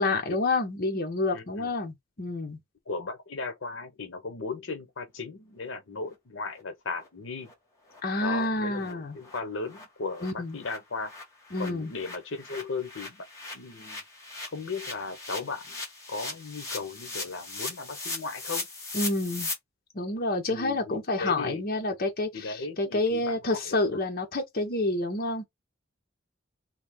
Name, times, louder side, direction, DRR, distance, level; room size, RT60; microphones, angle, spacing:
voice 1, 0.0-2.6 8.0-9.2 10.2-10.6 11.5-11.9 18.9-19.5 19.9-25.4, left 2 dB, 50° left, 1.0 m, -28 dB
voice 2, 1.3-1.7 2.9-7.5 8.2-11.1 11.6-13.3 13.5-14.0 14.5-15.8 16.1-18.7 20.5-21.7 22.3-24.0, left 4 dB, 75° left, 0.8 m, -36 dB
sound 1, 6.6-6.7 7.0-7.1 7.4-7.5 7.9-8.0 8.3-8.5 8.8-8.9 9.2-9.4 9.6-19.5, left 3 dB, 15° left, 1.5 m, -39 dB
3.5 x 2.7 x 3.5 m
head